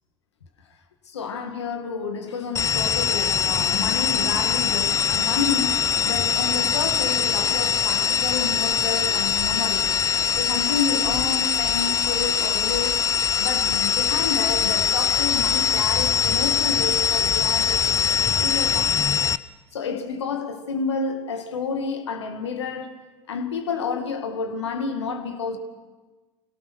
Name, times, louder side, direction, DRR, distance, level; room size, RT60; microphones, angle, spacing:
voice 1, 1.1-10.0 10.3-13.1 13.4-19.2 19.7-22.9 23.3-25.6, left 5 dB, 85° left, 2.0 m, -30 dB
sound 1, 2.6-19.4, left 7 dB, 25° left, 0.7 m, -22 dB
sound 2, 6.3-18.2, right 1 dB, 5° right, 1.8 m, -39 dB
26.0 x 17.5 x 6.3 m
hypercardioid pair, 75°, 14 cm